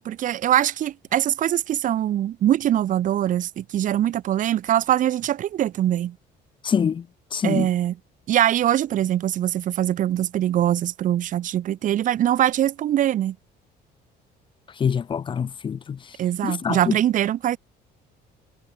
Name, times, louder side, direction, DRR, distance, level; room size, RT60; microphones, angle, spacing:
voice 1, 0.0-6.1 7.4-8.0 8.3-13.3 16.2-17.6, right 11 dB, 45° right, 3.5 m, -22 dB
voice 2, 6.6-7.0 7.3-7.7 14.8-15.8 16.4-16.8, left 7 dB, 25° left, 1.8 m, -24 dB
cardioid pair, 175°, 18 cm